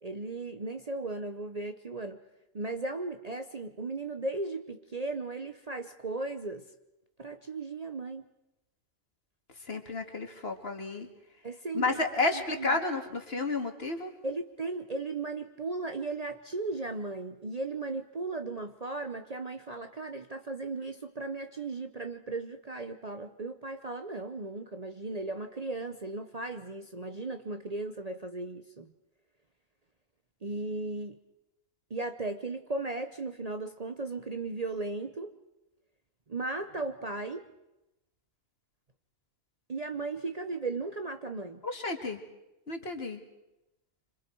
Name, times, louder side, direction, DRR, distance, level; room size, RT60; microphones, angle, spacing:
voice 1, 0.0-2.2 2.5-6.6 7.2-8.2 11.4-12.0 12.3-12.8 14.2-28.9 30.4-31.2 31.9-35.3 36.3-37.5 39.7-41.6, right 3 dB, 35° right, 7 dB, 0.9 m, -36 dB
voice 2, 9.7-11.1 11.7-14.1 41.6-42.2 42.7-43.2, left 3 dB, 50° left, 5 dB, 2.3 m, -31 dB
27.0 x 26.0 x 4.6 m, 0.93 s
omnidirectional pair, 1.3 m